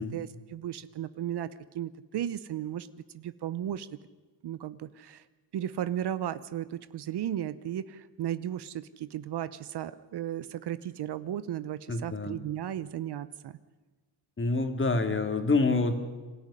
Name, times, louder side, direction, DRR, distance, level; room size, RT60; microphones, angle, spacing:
voice 1, 0.0-4.0 4.4-5.2 5.5-13.6, right 11 dB, 55° right, 15 dB, 0.9 m, -35 dB
voice 2, 11.9-12.3 14.4-15.9, left 3 dB, 25° left, 7 dB, 2.6 m, -26 dB
26.0 x 13.5 x 9.9 m, 1.3 s
cardioid pair, 100°, 47 cm